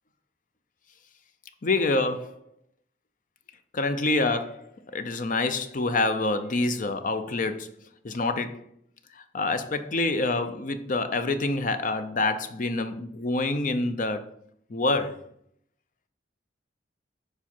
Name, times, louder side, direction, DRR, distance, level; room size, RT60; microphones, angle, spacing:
voice 1, 1.6-2.4 3.7-7.7 8.0-8.6 9.1-14.2 14.7-15.2, left 2 dB, 50° left, 0.6 m, -27 dB
7.2 x 4.9 x 4.4 m
head